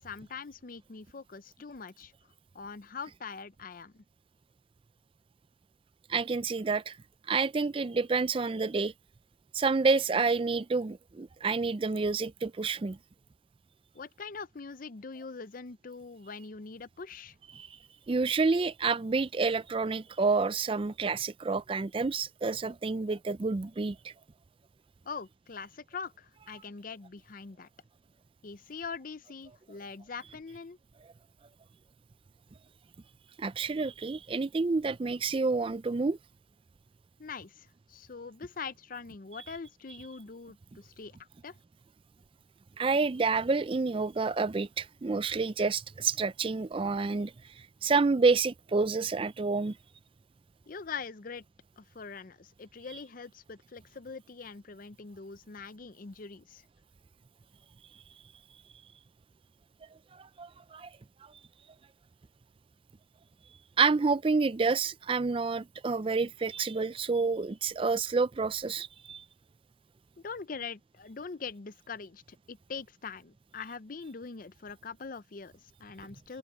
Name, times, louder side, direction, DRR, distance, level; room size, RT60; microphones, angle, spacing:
voice 1, 0.0-2.1 2.5-4.0 13.9-17.4 25.1-27.7 28.4-30.8 37.2-41.2 41.4-41.6 50.7-51.4 51.8-56.7 70.2-72.2 72.5-76.4, left 5 dB, 45° left, 0.5 m, -43 dB
voice 2, 6.1-7.0 7.3-8.9 9.5-13.0 17.5-17.7 18.1-24.1 33.4-36.2 42.8-47.3 47.8-49.8 60.2-60.9 63.8-69.2, right 4 dB, 25° right, 0.4 m, -29 dB
open air
head